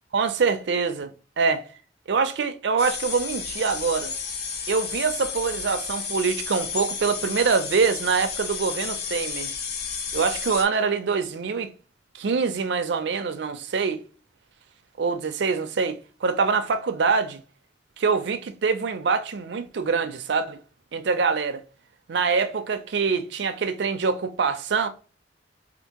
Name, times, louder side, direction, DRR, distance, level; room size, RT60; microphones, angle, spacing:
voice 1, 0.1-1.7 2.1-4.1 4.7-9.5 10.1-11.7 12.1-14.0 15.0-17.4 18.0-20.6 20.9-21.6 22.1-24.9, right 5 dB, 65° right, 0.4 m, -24 dB
sound 1, 2.8-10.6, left 5 dB, 60° left, 0.6 m, -32 dB
3.5 x 2.5 x 2.8 m
head